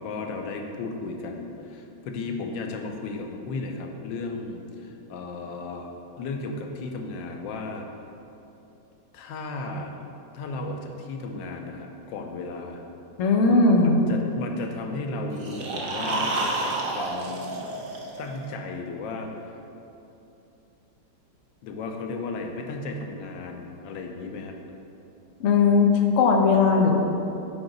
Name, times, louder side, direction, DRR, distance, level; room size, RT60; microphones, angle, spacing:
voice 1, 0.0-7.8 9.1-9.9 10.3-12.8 13.8-17.4 18.2-19.6 21.6-24.6, left 3 dB, 90° left, 3 dB, 1.4 m, -35 dB
voice 2, 13.2-14.0 25.4-27.0, left 4 dB, 60° left, 2 dB, 0.8 m, -18 dB
sound 1, 15.3-18.5, right 2 dB, 55° right, 0.6 m, -30 dB
7.9 x 4.8 x 3.9 m, 2.9 s
omnidirectional pair, 2.0 m